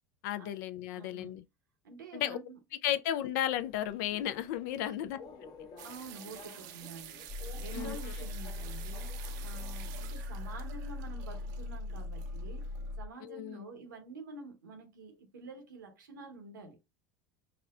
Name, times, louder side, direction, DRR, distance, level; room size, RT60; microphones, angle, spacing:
voice 1, 0.2-1.4 2.1-2.4 2.8-5.2 7.7-8.0 13.2-13.6, left 12 dB, 70° left, 0.4 m, -34 dB
voice 2, 0.9-1.4 1.8-2.6 4.8-5.1 5.8-7.3 7.5-12.7 13.0-16.8, right 3 dB, 90° right, 1.0 m, -48 dB
Subway metro underground, 3.4-10.2, left 5 dB, 50° left, 1.0 m, -53 dB
sound 1, 5.8-13.0, right 11 dB, 70° right, 0.6 m, -50 dB
sound 2, 7.3-13.1, left 2 dB, 5° left, 0.5 m, -40 dB
4.7 x 2.1 x 2.4 m
hypercardioid pair, 85°, 10 cm